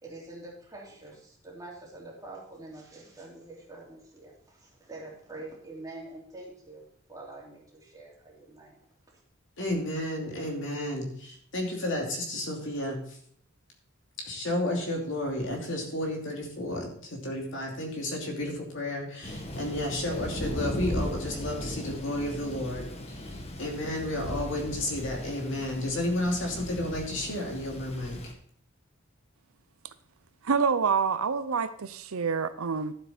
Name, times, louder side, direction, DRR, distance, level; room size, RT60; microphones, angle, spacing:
voice 1, 0.0-8.8 9.1-9.2, right 2 dB, 15° right, -4 dB, 3.1 m, -46 dB
voice 2, 9.6-13.2 14.2-28.2, left 1 dB, 60° left, 1 dB, 2.7 m, -32 dB
Thunder, 19.2-28.3, left 1 dB, 30° left, 1.2 m, -37 dB
voice 3, 30.4-32.9, right 5 dB, 85° right, 13 dB, 0.7 m, -27 dB
12.0 x 7.8 x 4.3 m, 0.63 s
head